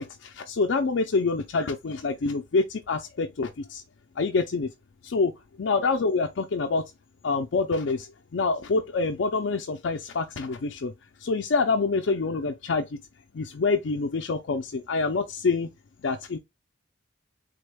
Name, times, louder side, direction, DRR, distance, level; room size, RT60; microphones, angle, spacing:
voice 1, 0.0-3.8 4.2-4.7 5.0-5.3 5.6-6.8 7.2-10.9 11.2-13.0 13.3-15.7 16.0-16.4, left 4 dB, 70° left, 0.5 m, -26 dB
3.5 x 3.4 x 2.2 m
head